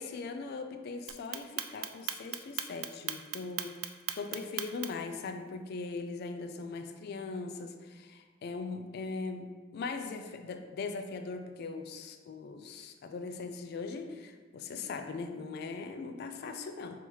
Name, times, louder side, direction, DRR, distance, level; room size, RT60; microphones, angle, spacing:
voice 1, 0.0-3.7 4.2-17.0, left 4 dB, 55° left, 6 dB, 0.3 m, -40 dB
Clock, 1.1-5.1, right 12 dB, 80° right, 0.3 m, -36 dB
5.3 x 3.0 x 3.1 m, 1.4 s
head